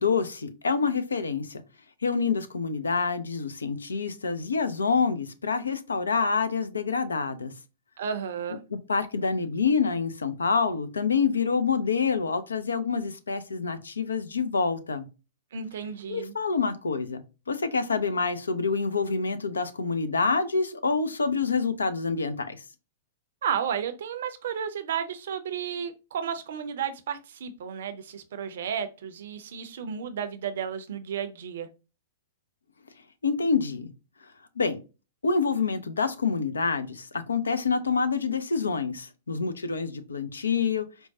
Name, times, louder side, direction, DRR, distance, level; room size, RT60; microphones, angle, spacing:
voice 1, 0.0-1.6 2.0-7.5 8.9-15.1 16.1-22.6 33.2-33.9 34.6-34.8 35.2-40.9, left 5 dB, 75° left, 0.4 m, -27 dB
voice 2, 8.0-8.6 15.5-16.3 23.4-31.7, right 7 dB, 60° right, 0.5 m, -33 dB
4.5 x 2.1 x 2.6 m
figure-of-eight pair, 105°, 0 cm